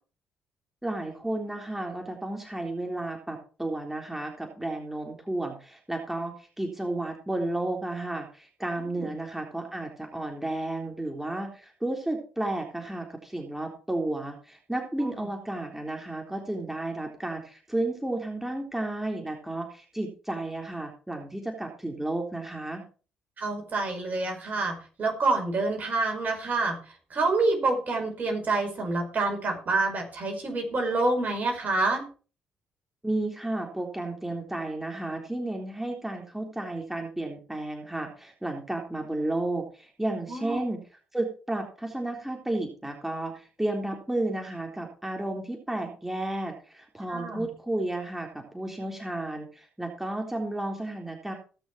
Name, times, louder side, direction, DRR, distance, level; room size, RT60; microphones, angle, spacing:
voice 1, 0.8-22.8 33.0-40.8 41.1-51.3, right 2 dB, 5° right, 2 dB, 3.7 m, -32 dB
voice 2, 23.4-26.8 27.1-32.0 40.3-40.6 47.1-47.5, right 3 dB, 45° right, 3 dB, 5.2 m, -27 dB
18.5 x 6.4 x 4.7 m, 0.37 s
hypercardioid pair, 50°, 4 cm